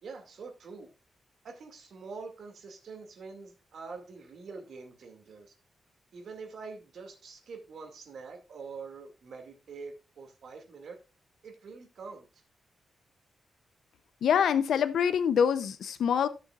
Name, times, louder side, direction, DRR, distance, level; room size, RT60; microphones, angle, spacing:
voice 1, 0.0-0.9 1.4-5.5 6.1-11.0 11.4-12.3, right 4 dB, 65° right, 4 dB, 2.3 m, -45 dB
voice 2, 14.2-16.3, left 7 dB, 80° left, 13 dB, 0.6 m, -25 dB
15.0 x 6.9 x 2.4 m, 0.30 s
wide cardioid pair, 155°, 0 cm